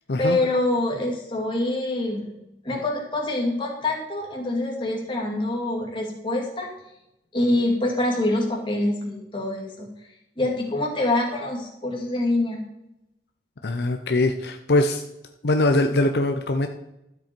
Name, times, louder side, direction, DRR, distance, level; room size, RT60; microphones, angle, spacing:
voice 1, 0.2-2.3 2.6-6.7 7.3-9.9 10.4-12.6, left 2 dB, 30° left, -1 dB, 2.4 m, -25 dB
voice 2, 13.6-15.0 15.4-16.7, left 2 dB, 70° left, 6 dB, 0.7 m, -22 dB
12.5 x 7.7 x 4.5 m, 0.87 s
head